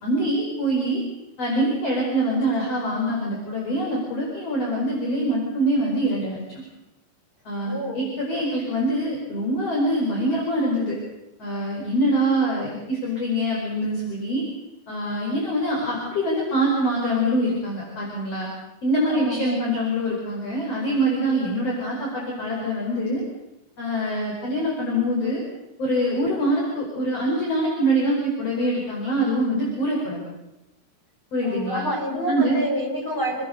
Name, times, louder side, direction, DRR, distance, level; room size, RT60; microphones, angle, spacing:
voice 1, 0.0-1.0 1.4-6.6 7.4-11.0 11.4-14.4 14.9-18.5 18.8-23.2 23.8-25.4 25.8-30.2 31.3-31.9 32.3-32.6, right 1 dB, 35° left, -3 dB, 6.0 m, -24 dB
voice 2, 7.6-8.1 19.1-19.6 31.4-33.4, equal, 5° left, -2 dB, 7.7 m, -28 dB
28.5 x 21.0 x 6.7 m, 0.94 s
omnidirectional pair, 5.1 m